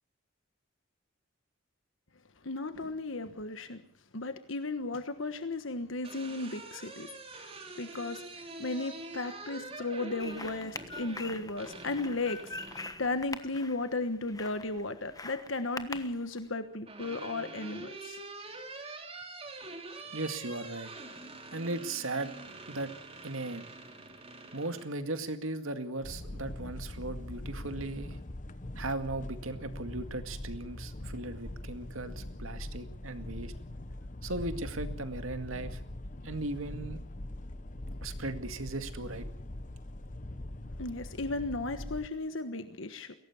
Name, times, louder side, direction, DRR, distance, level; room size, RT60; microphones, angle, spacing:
voice 1, 2.4-3.8 4.1-7.1 7.8-8.2 8.6-12.4 12.7-18.2 40.8-43.1, left 2 dB, 70° left, 9 dB, 1.4 m, -35 dB
sound 1, 5.8-13.0 14.5-15.1 16.4-24.9, right 2 dB, 30° right, 3.1 m, -46 dB
sound 2, 10.2-16.5, left 3 dB, 20° left, 1.2 m, -44 dB
voice 2, 20.1-20.9 21.5-22.3 22.7-22.9 23.2-23.6 24.5-28.2 28.8-33.5 34.2-35.8 36.2-37.0 38.0-39.3, right 2 dB, 90° right, 8 dB, 2.1 m, -37 dB
sound 3, 26.0-42.1, left 1 dB, 40° left, 1.0 m, -42 dB
22.5 x 17.5 x 7.2 m, 0.65 s
head